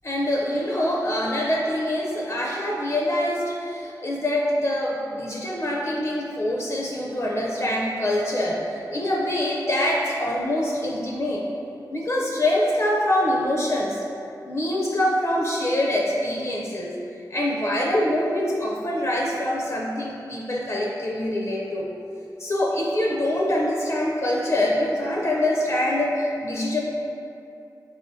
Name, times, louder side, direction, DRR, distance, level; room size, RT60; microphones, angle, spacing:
voice 1, 0.0-11.5 11.9-14.0 14.5-16.9 17.3-21.9 22.4-26.8, left 1 dB, 40° left, -3 dB, 0.5 m, -24 dB
4.9 x 2.9 x 2.7 m, 2.7 s
wide cardioid pair, 70°, 7 cm